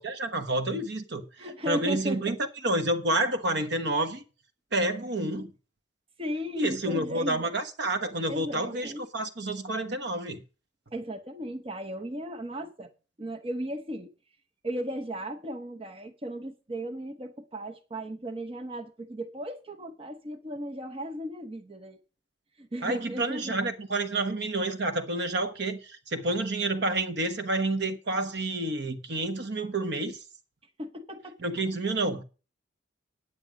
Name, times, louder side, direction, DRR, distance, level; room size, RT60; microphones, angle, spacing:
voice 1, 0.0-1.2 1.7-2.4 2.6-4.2 4.7-5.5 6.6-10.4 22.8-30.2 31.4-32.2, right 2 dB, 60° right, 1.3 m, -29 dB
voice 2, 1.4-2.2 6.2-7.5 8.3-9.0 10.9-12.9 13.2-14.1 14.6-22.0 22.6-23.6 30.8-31.4, equal, 30° right, 0.9 m, -36 dB
9.2 x 9.0 x 5.1 m
head